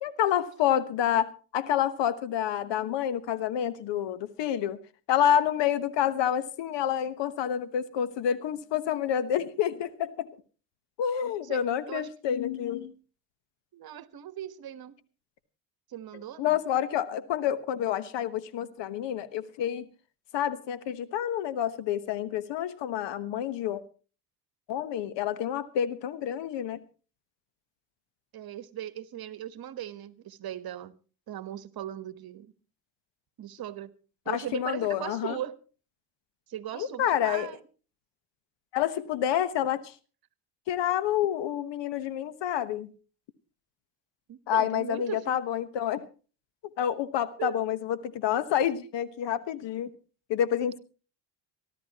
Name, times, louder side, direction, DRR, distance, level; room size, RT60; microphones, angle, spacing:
voice 1, 0.0-4.8 5.1-10.3 11.0-12.9 16.4-19.9 20.3-23.8 24.7-26.8 34.3-35.4 36.7-37.5 38.7-39.9 40.7-42.9 44.5-46.1 46.8-49.9 50.3-50.8, left 10 dB, 65° left, 15 dB, 1.3 m, -28 dB
voice 2, 13.7-15.0 15.9-16.6 28.3-30.9 31.3-32.5 33.4-33.9 34.2-35.6 36.5-37.6 44.3-45.4 47.4-47.6, right 11 dB, 50° right, 14 dB, 1.3 m, -38 dB
25.0 x 12.5 x 3.0 m, 0.36 s
supercardioid pair, 75°, 46 cm